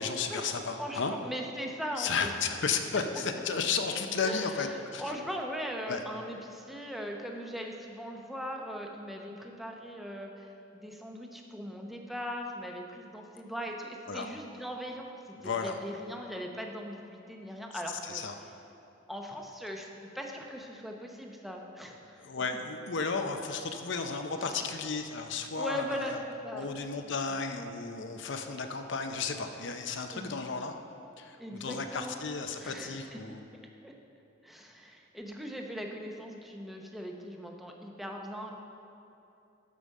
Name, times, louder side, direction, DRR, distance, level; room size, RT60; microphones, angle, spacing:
voice 1, 0.0-1.1 2.0-5.0 5.9-6.0 14.1-14.3 15.4-15.8 18.0-18.3 22.2-26.2 26.5-30.7 31.2-33.4, left 5 dB, 65° left, 5 dB, 0.7 m, -33 dB
voice 2, 0.7-2.3 4.2-18.2 19.1-22.3 24.4-24.6 25.6-26.7 27.3-27.4 30.1-30.4 31.4-32.2 32.6-33.2 33.8-33.9 34.4-38.6, equal, ahead, 1 dB, 0.8 m, -40 dB
12.0 x 5.1 x 6.5 m, 2.7 s
head